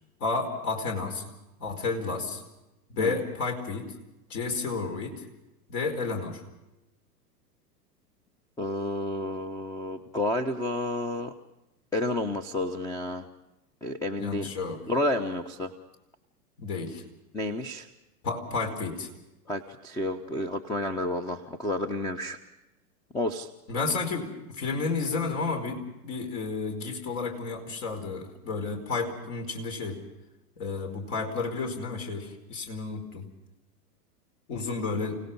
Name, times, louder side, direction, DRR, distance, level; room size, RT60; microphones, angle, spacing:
voice 1, 0.2-1.2 1.6-2.4 2.9-3.9 4.3-5.2 5.7-6.4 14.2-14.8 16.6-17.0 18.2-19.1 23.7-30.0 30.6-33.3 34.5-35.2, left 4 dB, 50° left, 3 dB, 4.7 m, -31 dB
voice 2, 8.6-11.3 11.9-13.3 13.8-14.5 14.9-15.7 17.3-17.9 19.5-22.4 23.1-23.5, left 1 dB, 10° left, 9 dB, 1.0 m, -30 dB
30.0 x 17.5 x 5.6 m, 0.95 s
figure-of-eight pair, 100°, 48 cm